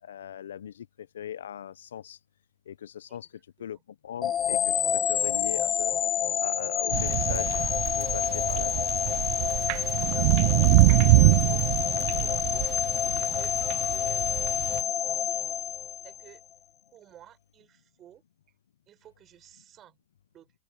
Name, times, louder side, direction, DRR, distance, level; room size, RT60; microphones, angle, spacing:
voice 1, 0.0-2.2 2.7-3.3 3.6-6.0 6.4-7.6 7.9-9.0, left 9 dB, 80° left, 0.7 m, -39 dB
voice 2, 3.1-3.8 9.4-12.7 13.2-14.3 16.0-16.4 16.9-18.6 18.9-20.0 20.3-20.5, right 11 dB, 35° right, 7.3 m, -55 dB
sound 1, 4.2-16.4, left 9 dB, 30° left, 0.7 m, -28 dB
sound 2, 6.9-14.8, right 27 dB, 55° right, 0.4 m, -24 dB
open air
hypercardioid pair, 105°, 0 cm